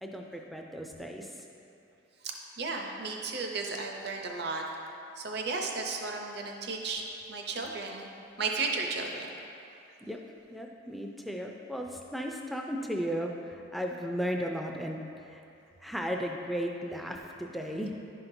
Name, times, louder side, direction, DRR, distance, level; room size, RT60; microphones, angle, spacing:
voice 1, 0.0-1.4 10.0-10.2 10.5-15.4 15.8-17.9, equal, ahead, 1 dB, 0.3 m, -35 dB
voice 2, 2.6-4.6 5.2-8.1 8.4-9.3, right 3 dB, 55° right, 1 dB, 0.6 m, -34 dB
10.5 x 5.7 x 2.6 m, 2.6 s
head